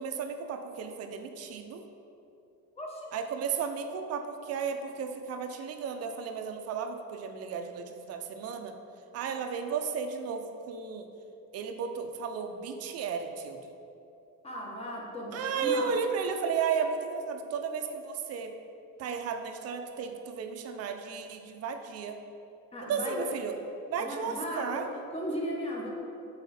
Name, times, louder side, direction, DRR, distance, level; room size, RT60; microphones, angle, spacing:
voice 1, 0.0-1.8 3.1-8.7 9.1-11.1 11.5-13.6 15.3-18.5 19.0-22.2 22.9-23.5 23.9-24.9, right 6 dB, 45° right, 6 dB, 0.6 m, -34 dB
voice 2, 2.8-3.1 14.4-15.8 22.7-23.3 24.0-25.9, equal, 15° left, -2 dB, 1.1 m, -36 dB
8.1 x 4.9 x 4.2 m, 2.8 s
cardioid pair, 160°, 35 cm